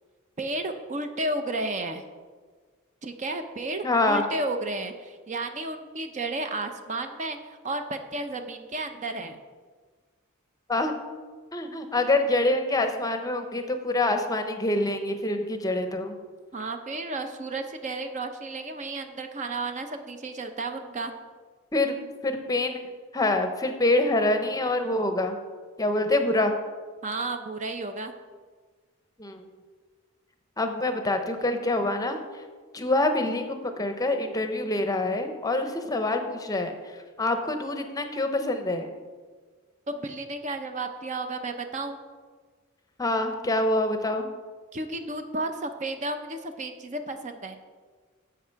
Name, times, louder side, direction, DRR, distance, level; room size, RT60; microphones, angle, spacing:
voice 1, 0.4-2.0 3.0-9.4 16.5-21.1 27.0-28.1 39.9-42.0 44.7-47.6, right 2 dB, 35° right, 7 dB, 0.7 m, -32 dB
voice 2, 3.8-4.2 10.7-11.0 11.5-16.1 21.7-21.9 22.2-22.8 23.1-25.4 25.8-26.5 29.2-29.5 30.6-32.2 32.7-36.7 37.2-38.9 43.0-44.3, left 2 dB, 15° left, 7 dB, 0.7 m, -26 dB
10.5 x 7.5 x 4.6 m, 1.5 s
head